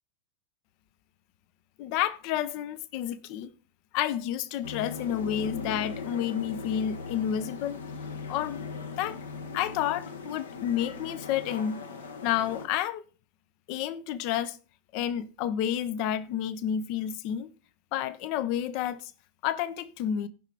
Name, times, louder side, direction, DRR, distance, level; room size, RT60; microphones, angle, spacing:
voice 1, 1.8-3.5 3.9-7.8 8.3-8.6 9.0-9.2 9.5-11.8 12.2-13.0 13.7-14.6 14.9-17.5 17.9-19.1 19.4-20.3, left 10 dB, 45° left, 0.7 m, -30 dB
sound 1, 4.6-12.7, left 4 dB, 65° left, 1.3 m, -39 dB
15.5 x 5.8 x 4.6 m
figure-of-eight pair, 90°, 0 cm